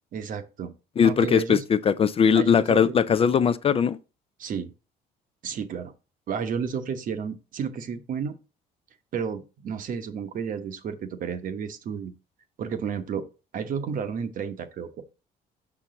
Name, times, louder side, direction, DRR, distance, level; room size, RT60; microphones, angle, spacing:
voice 1, 0.1-0.7 1.0-1.6 2.3-3.2 4.4-4.7 5.4-5.9 6.3-8.4 9.1-12.1 12.6-13.2 13.5-15.0, right 6 dB, 55° right, 1.0 m, -32 dB
voice 2, 1.0-4.0, left 7 dB, 35° left, 0.4 m, -20 dB
6.0 x 5.8 x 3.9 m
cardioid pair, 110°, 17 cm